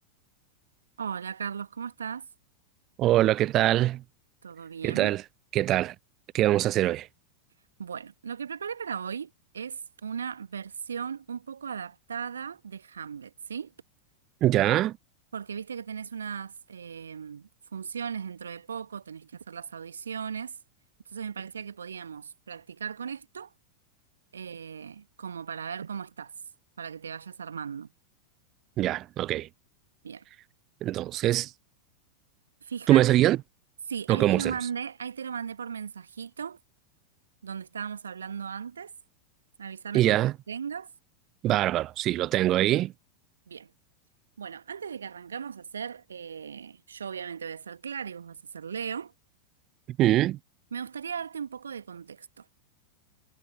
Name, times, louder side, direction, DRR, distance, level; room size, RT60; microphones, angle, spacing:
voice 1, 1.0-2.3 4.4-5.1 7.8-13.7 15.3-20.5 21.1-23.5 24.3-26.3 26.8-27.9 30.0-30.2 32.6-33.0 33.9-36.6 37.4-38.9 39.6-40.9 43.5-43.7 44.4-49.1 50.7-52.4, right 7 dB, 70° right, 1.5 m, -37 dB
voice 2, 3.0-4.0 4.8-5.2 5.5-5.9 6.3-7.1 14.4-15.0 28.8-29.5 30.8-31.5 32.9-33.4 34.1-34.5 39.9-40.3 41.4-42.9 50.0-50.4, right 14 dB, 35° right, 0.4 m, -23 dB
figure-of-eight pair, 90°, 0 cm